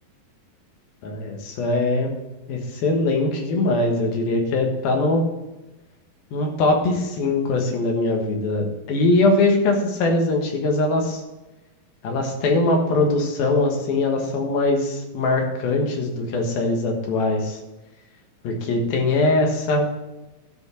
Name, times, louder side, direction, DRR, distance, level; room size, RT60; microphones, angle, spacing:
voice 1, 1.0-2.1 2.5-5.2 6.3-11.2 12.0-17.6 18.4-19.9, left 2 dB, 80° left, 2 dB, 3.3 m, -21 dB
12.5 x 5.3 x 6.2 m, 1.1 s
omnidirectional pair, 4.2 m